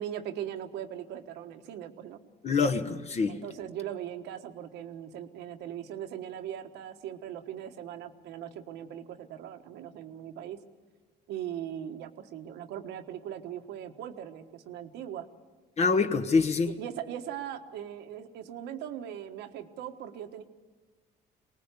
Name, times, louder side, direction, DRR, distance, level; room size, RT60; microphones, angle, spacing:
voice 1, 0.0-2.2 3.3-10.6 11.3-15.3 16.6-20.4, right 10 dB, 85° right, 7 dB, 1.4 m, -39 dB
voice 2, 2.4-3.4 15.8-16.7, left 4 dB, 40° left, 8 dB, 1.1 m, -25 dB
23.5 x 19.0 x 8.3 m, 1.3 s
cardioid pair, 110°, 17 cm